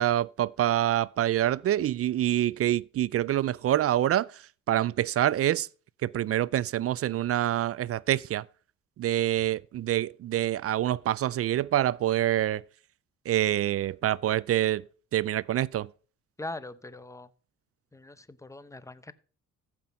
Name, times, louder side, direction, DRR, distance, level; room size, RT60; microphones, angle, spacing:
voice 1, 0.0-4.3 4.7-5.7 6.0-8.4 9.0-12.6 13.3-14.8 15.1-15.9, right 12 dB, 50° right, 0.4 m, -26 dB
voice 2, 16.4-17.3 17.9-19.1, left 2 dB, 10° left, 0.8 m, -41 dB
14.5 x 6.0 x 5.5 m
cardioid pair, 90°, 30 cm